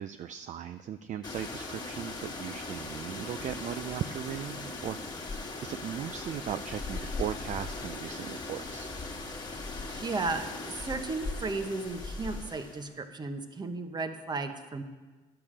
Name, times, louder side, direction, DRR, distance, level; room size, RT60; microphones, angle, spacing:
voice 1, 0.0-5.0 5.6-8.9, right 10 dB, 45° right, 10 dB, 0.4 m, -37 dB
sound 1, 1.2-12.9, left 3 dB, 25° left, 1.7 m, -39 dB
voice 2, 9.9-14.8, right 3 dB, 25° right, 7 dB, 1.0 m, -34 dB
10.5 x 6.8 x 7.4 m, 1.3 s
cardioid pair, 110°, 17 cm